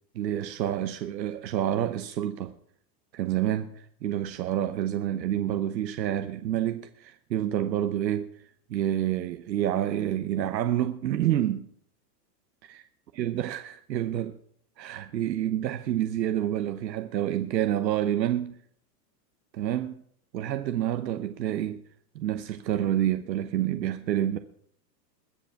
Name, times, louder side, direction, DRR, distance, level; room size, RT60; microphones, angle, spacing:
voice 1, 0.1-2.5 3.1-8.3 8.7-11.7 12.6-12.8 13.2-14.4 14.8-18.6 19.5-20.0 20.3-21.8 22.1-24.4, right 11 dB, 90° right, 1.0 m, -28 dB
21.0 x 7.2 x 5.8 m
supercardioid pair, 140°, 49 cm